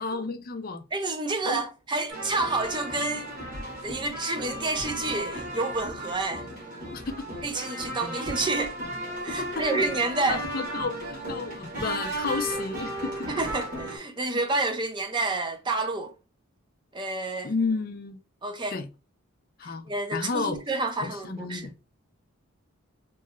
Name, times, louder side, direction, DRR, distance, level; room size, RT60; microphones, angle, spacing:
voice 1, 0.0-0.8 1.4-1.6 6.9-7.3 8.0-8.1 9.3-9.7 10.3-13.3 17.4-18.2 18.7-18.9 19.6-19.8 20.1-20.6 21.0-21.7, left 4 dB, 40° left, 0.5 m, -32 dB
voice 2, 0.9-3.4 3.8-6.5 7.4-8.7 9.2-10.4 13.3-16.1 16.9-17.5 18.4-18.8 19.9-21.7, right 3 dB, 20° right, 0.5 m, -29 dB
sound 1, 2.1-14.0, right 1 dB, 40° right, 1.2 m, -35 dB
3.1 x 2.7 x 2.3 m
head